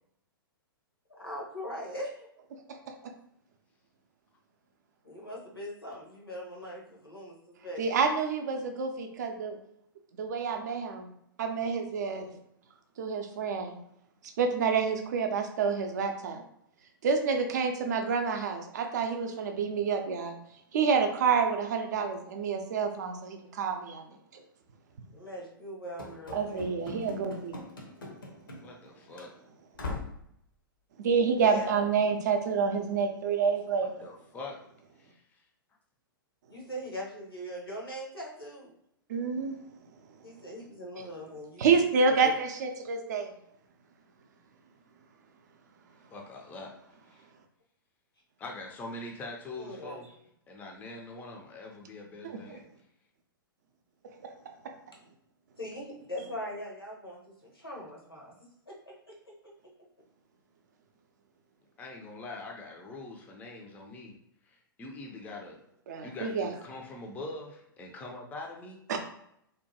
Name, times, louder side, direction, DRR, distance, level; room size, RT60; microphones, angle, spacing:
voice 1, 1.1-2.3 5.0-8.0 25.1-26.7 31.4-31.7 36.5-38.7 40.2-41.7 41.9-42.4 49.6-50.1 55.6-58.3 58.7-59.1 59.4-59.5, equal, 90° left, -2 dB, 0.9 m, -41 dB
voice 2, 7.8-9.6 10.2-11.1 11.4-12.3 13.0-13.7 14.4-16.4 17.0-20.3 20.7-24.0 26.3-27.5 31.0-34.0 39.1-39.6 41.6-43.3 52.2-52.6 65.9-66.5 68.9-69.0, right 5 dB, 50° right, 5 dB, 0.4 m, -28 dB
Run / Slam, 26.0-28.9 29.1-29.3 29.8-30.3, left 2 dB, 70° left, 0.6 m, -41 dB
voice 3, 28.6-29.3 33.8-34.6 35.0-35.4 46.1-46.7 47.0-47.3 48.4-50.0 50.5-52.6 61.8-64.1 64.4-65.6 66.0-68.8, left 2 dB, 15° left, 1 dB, 0.4 m, -43 dB
2.7 x 2.2 x 2.7 m, 0.74 s
figure-of-eight pair, 110°, 12 cm